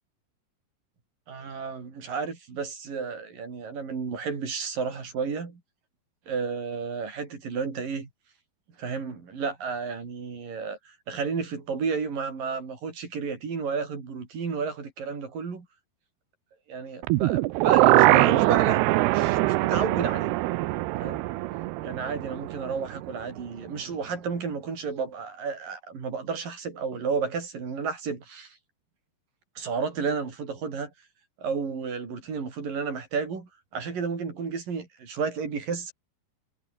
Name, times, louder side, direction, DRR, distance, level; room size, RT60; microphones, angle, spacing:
voice 1, 1.3-5.6 6.3-8.1 8.8-10.8 11.1-15.7 16.7-18.8 19.1-20.4 21.0-21.3 21.8-28.6 29.6-30.9 31.4-35.9, right 5 dB, 55° right, 6.5 m, -32 dB
sound 1, 17.0-23.1 23.4-23.5, right 19 dB, 85° right, 2.8 m, -22 dB
omnidirectional pair, 4.6 m